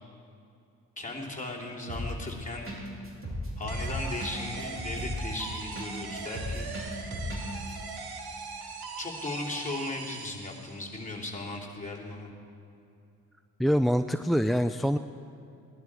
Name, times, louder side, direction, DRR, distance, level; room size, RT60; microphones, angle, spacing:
voice 1, 1.0-2.7 3.6-6.7 9.0-12.3, left 2 dB, 20° left, -2 dB, 2.9 m, -37 dB
sound 1, 1.9-2.3 2.7-2.8 3.1-5.9 6.2-7.4 7.7-7.8, equal, 35° right, 3.7 m, -35 dB
sound 2, 3.7-11.0, right 4 dB, 65° right, 1.6 m, -41 dB
voice 2, 13.6-15.0, equal, ahead, 11 dB, 0.3 m, -25 dB
18.0 x 12.0 x 4.7 m, 2.6 s
supercardioid pair, 55°, 39 cm